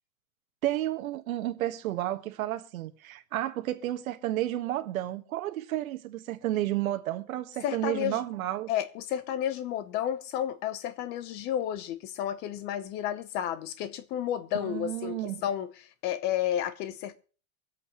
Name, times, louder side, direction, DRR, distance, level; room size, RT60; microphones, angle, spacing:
voice 1, 0.6-8.7 14.5-15.4, right 14 dB, 80° right, 1.6 m, -31 dB
voice 2, 7.6-8.2 8.7-15.7 16.0-17.1, left 11 dB, 25° left, 0.8 m, -31 dB
24.0 x 8.3 x 3.0 m
supercardioid pair, 170°, 41 cm